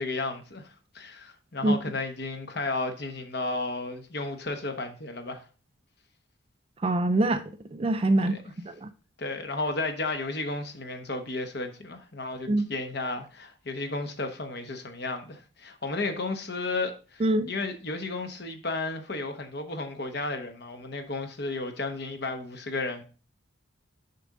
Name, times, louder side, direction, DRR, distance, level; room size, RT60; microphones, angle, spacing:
voice 1, 0.0-5.4 8.2-8.4 9.2-23.0, left 3 dB, 50° left, 1.0 m, -33 dB
voice 2, 6.8-7.4 7.7-8.4 8.8-8.9 12.5-12.7 17.2-17.5, right 2 dB, 30° right, 0.4 m, -23 dB
6.7 x 5.1 x 3.7 m
head